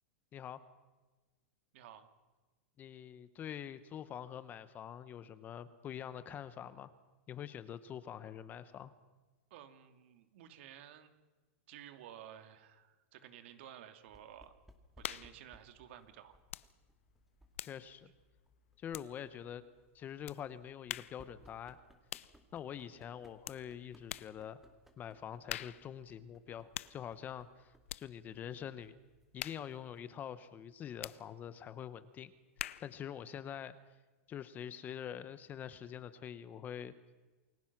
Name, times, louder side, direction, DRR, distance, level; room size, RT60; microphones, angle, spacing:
voice 1, 1.7-2.1 9.5-11.1 11.7-14.5 15.0-16.4, right 10 dB, 65° right, 8 dB, 2.5 m, -53 dB
voice 2, 2.8-6.9 7.3-8.9 17.6-18.1 18.8-19.6 19.9-21.8 22.5-24.6 25.0-27.7 28.0-28.9 29.3-32.3 32.8-33.7 34.3-36.9, left 9 dB, 25° left, 14 dB, 1.1 m, -45 dB
sound 1, 14.1-30.2, equal, 5° right, 2.2 m, -66 dB
sound 2, 15.0-15.4 16.5-16.7 17.0-19.4 20.3-20.4 20.9-21.2 22.1-22.4 23.4-23.7 24.1-24.4 25.5-25.9 26.7-27.0 27.9-28.1 29.4-29.7 31.0-31.2 32.6-33.0, left 12 dB, 85° left, 0.7 m, -44 dB
28.5 x 21.5 x 6.1 m, 1.2 s
supercardioid pair, 145°, 7 cm